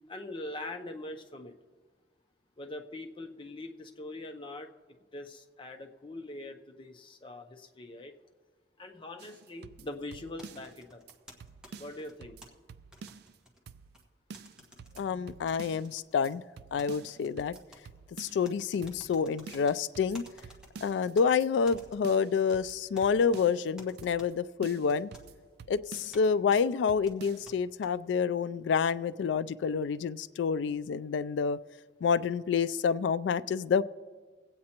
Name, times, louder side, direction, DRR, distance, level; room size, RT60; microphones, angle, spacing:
voice 1, 0.1-1.5 2.6-8.1 8.8-11.0 11.7-12.4, left 2 dB, 30° left, 4 dB, 0.6 m, -43 dB
sound 1, 9.2-10.8 11.1-11.2 11.4-13.4 13.7-14.0 14.3-15.9 16.2-16.3 16.6-18.5 18.8-19.2 19.5-21.1 21.4-21.5 21.7-23.7 24.0-24.3 24.6-26.3 26.6-26.7 26.9-27.5, right 5 dB, 60° right, 0.3 m, -49 dB
sound 2, 10.4-12.5 12.9-14.0 14.3-15.0 15.5-16.3 16.8-17.8 18.4-19.8 20.1-21.3 21.7-22.6 23.0-23.4 23.8-24.3 24.9-25.3 26.1-26.2 26.5-26.6 27.1-27.9, left 1 dB, 5° right, 1.2 m, -53 dB
voice 2, 15.0-16.4 16.7-17.6 18.2-20.2 20.8-25.1 25.7-31.6 32.0-33.8, left 6 dB, 80° left, 16 dB, 0.3 m, -28 dB
22.0 x 8.6 x 2.9 m, 1.5 s
head